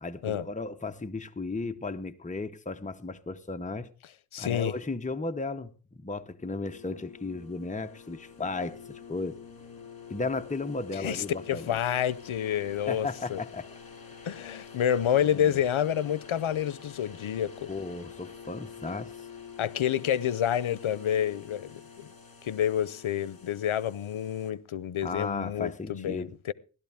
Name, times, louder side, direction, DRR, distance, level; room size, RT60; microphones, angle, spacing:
voice 1, 0.0-3.9 4.4-9.4 10.1-11.8 12.9-13.7 14.2-14.3 15.2-15.6 17.7-19.3 25.0-26.3, left 3 dB, 15° left, 0.9 m, -35 dB
voice 2, 4.3-4.7 11.0-13.4 14.2-17.7 19.6-22.1 22.4-26.5, left 10 dB, 80° left, 0.7 m, -29 dB
sound 1, 6.6-24.5, left 6 dB, 45° left, 2.4 m, -47 dB
16.5 x 12.0 x 3.5 m
wide cardioid pair, 65°, 48 cm